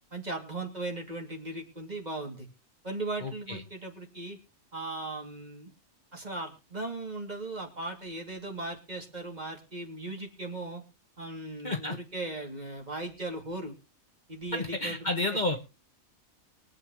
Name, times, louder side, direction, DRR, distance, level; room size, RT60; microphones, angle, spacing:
voice 1, 0.1-2.5 2.8-4.4 4.7-5.7 6.1-10.8 11.2-13.7 14.3-15.0 15.3-15.4, right 2 dB, 30° right, 1 dB, 2.8 m, -38 dB
voice 2, 3.2-3.6 11.6-12.0 14.5-15.7, left 2 dB, 35° left, 4 dB, 1.4 m, -31 dB
23.0 x 8.7 x 3.1 m, 0.32 s
omnidirectional pair, 1.4 m